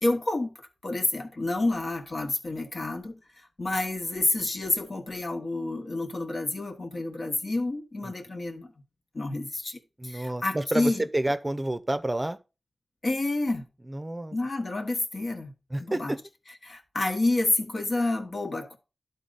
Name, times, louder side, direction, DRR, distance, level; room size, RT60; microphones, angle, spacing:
voice 1, 0.0-0.6 0.8-3.2 3.6-8.7 9.1-11.0 13.0-13.6 14.3-15.5 15.8-16.1 16.6-18.8, left 2 dB, 60° left, 1.3 m, -29 dB
voice 2, 10.0-12.4 13.9-14.4 15.7-16.2, right 1 dB, 25° right, 0.6 m, -29 dB
11.5 x 4.0 x 3.9 m
wide cardioid pair, 60°, 0 cm